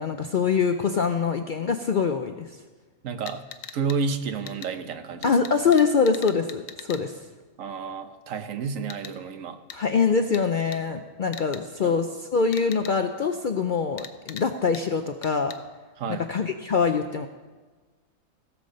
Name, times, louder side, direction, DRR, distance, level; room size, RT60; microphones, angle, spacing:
voice 1, 0.0-2.5 5.2-7.1 9.7-15.5 16.1-17.3, left 5 dB, 55° left, 6 dB, 0.5 m, -24 dB
voice 2, 3.0-3.4 3.7-5.3 7.6-9.6 11.8-12.0 16.0-16.3, right 5 dB, 75° right, 9 dB, 1.2 m, -30 dB
sound 1, 3.3-4.0 4.5-4.7 5.2-7.0 8.9-9.1 9.7-9.8 10.3-10.4 10.7-10.8 11.3-11.6 12.5-12.9 14.0-14.4 14.7-14.8 15.2-15.6, left 8 dB, 75° left, 1.1 m, -40 dB
16.5 x 7.1 x 5.2 m, 1.3 s
omnidirectional pair, 1.4 m